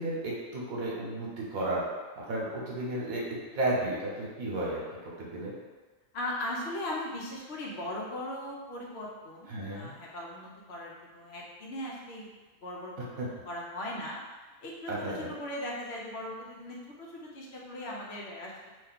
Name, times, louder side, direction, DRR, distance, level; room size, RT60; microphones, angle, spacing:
voice 1, 0.0-1.8 2.2-3.2 3.5-4.8 5.2-5.5 9.5-9.9 13.2-13.3 14.9-15.3, right 1 dB, 80° right, -4 dB, 1.3 m, -33 dB
voice 2, 6.1-12.3 12.6-14.2 14.6-18.7, left 1 dB, 55° left, -3 dB, 0.9 m, -39 dB
2.7 x 2.7 x 4.0 m, 1.3 s
omnidirectional pair, 1.4 m